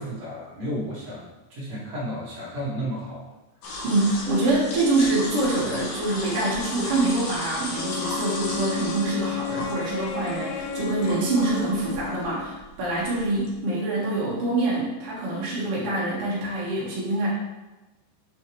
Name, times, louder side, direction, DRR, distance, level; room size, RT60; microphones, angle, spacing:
voice 1, 0.0-3.2, equal, 45° right, -7 dB, 2.8 m, -33 dB
sound 1, 3.6-13.5, left 2 dB, 60° left, 2.8 m, -35 dB
voice 2, 3.8-17.3, right 2 dB, 60° right, -6 dB, 1.5 m, -25 dB
Wind instrument woodwind instrument, 7.7-12.5, left 8 dB, 85° left, 3.1 m, -33 dB
7.9 x 6.7 x 3.1 m, 1.1 s
omnidirectional pair, 5.1 m